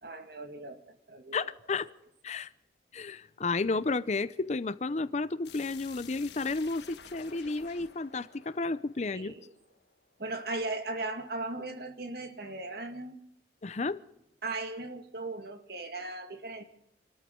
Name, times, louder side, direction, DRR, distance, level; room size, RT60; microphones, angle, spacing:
voice 1, 0.0-1.5 9.1-9.5 10.2-13.2 14.4-16.6, right 2 dB, 60° right, 7 dB, 1.9 m, -38 dB
voice 2, 1.3-1.9 2.2-2.5 2.9-9.3 13.6-14.0, left 3 dB, 40° left, 16 dB, 0.6 m, -32 dB
sound 1, 5.4-10.2, left 7 dB, 70° left, 1.5 m, -51 dB
28.0 x 13.5 x 3.8 m, 0.82 s
head